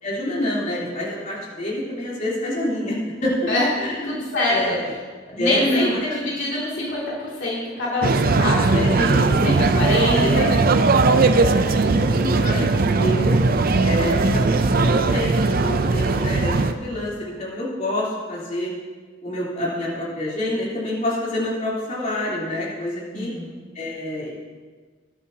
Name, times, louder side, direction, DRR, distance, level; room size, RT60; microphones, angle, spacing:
voice 1, 0.0-3.5 3.8-4.2 4.5-4.9 5.4-6.0 8.7-10.7 11.1-11.3 11.7-13.4 13.8-18.7 19.2-23.3 23.8-24.3, left 1 dB, 40° left, -7 dB, 3.6 m, -27 dB
voice 2, 4.0-4.8 5.3-10.5 23.1-23.5, left 1 dB, 70° left, -6 dB, 2.8 m, -25 dB
sound 1, 8.0-16.7, right 3 dB, 50° right, 0.6 m, -19 dB
20.5 x 8.6 x 2.9 m, 1.4 s
head